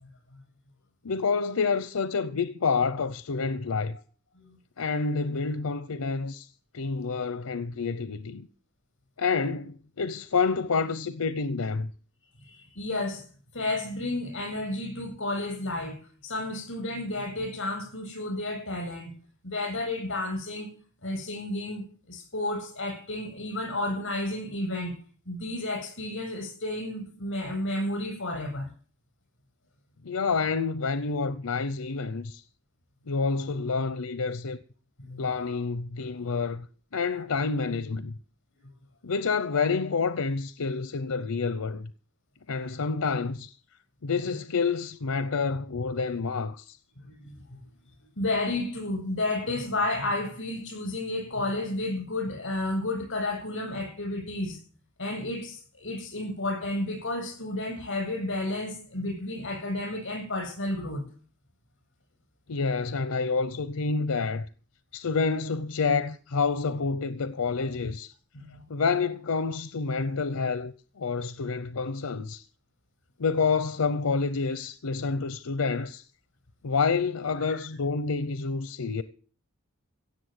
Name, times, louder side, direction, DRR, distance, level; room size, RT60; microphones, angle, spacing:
voice 1, 1.0-4.0 4.8-6.5 6.7-8.5 9.2-11.9 30.0-32.4 33.1-34.6 35.2-36.7 36.9-38.1 39.0-41.9 42.5-43.5 44.0-46.8 62.5-64.5 64.9-68.1 68.7-72.4 73.2-76.0 76.6-79.0, left 4 dB, 90° left, 0.7 m, -28 dB
voice 2, 12.4-13.3 13.5-19.1 19.4-20.7 21.0-25.0 25.3-28.7 35.0-35.2 47.0-47.4 48.2-54.6 55.0-61.0 68.3-68.6 77.5-77.6, left 2 dB, 55° left, 7.8 m, -32 dB
17.0 x 7.4 x 8.0 m
head